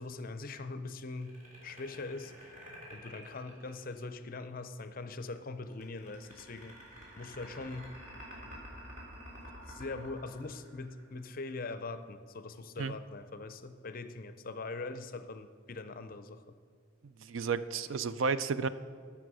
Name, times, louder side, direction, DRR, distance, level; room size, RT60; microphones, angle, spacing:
voice 1, 0.0-1.4 1.6-2.6 2.9-6.8 7.2-8.0 9.5-16.4, left 3 dB, 45° left, 10 dB, 0.5 m, -42 dB
sound 1, 1.1-4.3 5.7-11.2, equal, 40° right, 3.5 m, -49 dB
voice 2, 17.2-18.7, right 5 dB, 70° right, 14 dB, 0.4 m, -32 dB
14.5 x 6.0 x 6.2 m, 2.1 s
head